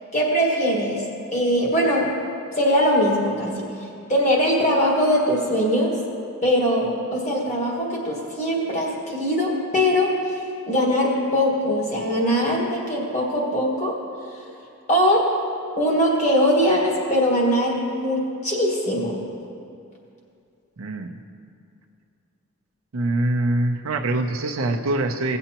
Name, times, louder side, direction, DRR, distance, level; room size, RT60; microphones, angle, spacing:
voice 1, 0.1-1.0 1.3-2.1 2.6-3.7 4.1-6.0 6.4-10.4 10.7-14.0 14.9-15.3 15.8-19.1, equal, 35° left, -2 dB, 1.7 m, -21 dB
voice 2, 20.8-21.1 22.9-25.4, right 2 dB, 70° right, 3 dB, 0.6 m, -24 dB
16.5 x 7.8 x 2.9 m, 2.5 s
head